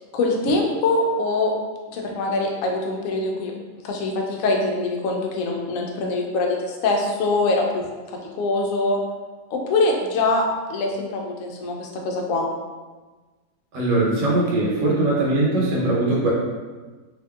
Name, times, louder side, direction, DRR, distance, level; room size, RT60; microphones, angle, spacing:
voice 1, 0.1-1.5 1.9-3.5 3.8-7.8 8.4-9.0 9.5-10.4 10.7-12.5, left 2 dB, 75° left, 0 dB, 0.7 m, -23 dB
voice 2, 13.7-16.3, right 2 dB, 75° right, -5 dB, 1.4 m, -21 dB
2.8 x 2.6 x 2.2 m, 1.3 s
omnidirectional pair, 1.9 m